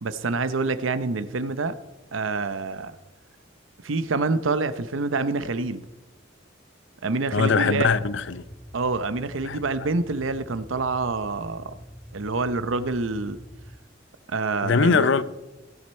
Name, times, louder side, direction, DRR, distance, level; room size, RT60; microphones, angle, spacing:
voice 1, 0.0-1.7 2.1-3.0 3.8-5.8 7.0-8.0 8.7-11.8 12.1-13.4 14.3-15.1, right 3 dB, 80° right, 0.7 m, -27 dB
voice 2, 7.3-8.4 9.4-9.6 14.6-15.3, left 5 dB, 65° left, 0.6 m, -21 dB
sound 1, 7.8-13.8, equal, ahead, 0.6 m, -45 dB
16.5 x 9.5 x 4.3 m
head